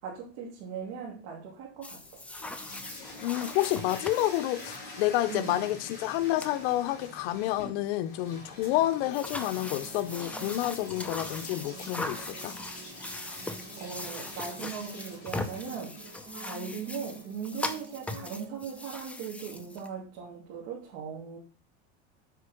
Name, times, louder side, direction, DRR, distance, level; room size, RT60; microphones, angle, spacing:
voice 1, 0.0-2.2 5.3-5.6 13.8-15.9 16.3-21.4, right 6 dB, 70° right, 3.1 m, -39 dB
sound 1, 1.8-4.8 6.1-6.2 6.4-6.5 9.1-19.9, left 2 dB, 5° left, 0.6 m, -40 dB
sound 2, 2.0-18.0, left 2 dB, 30° left, 4.4 m, -47 dB
voice 2, 3.2-12.6, left 15 dB, 70° left, 0.8 m, -29 dB
sound 3, 9.6-19.0, right 5 dB, 40° right, 1.4 m, -49 dB
8.2 x 5.4 x 5.9 m
supercardioid pair, 155°, 33 cm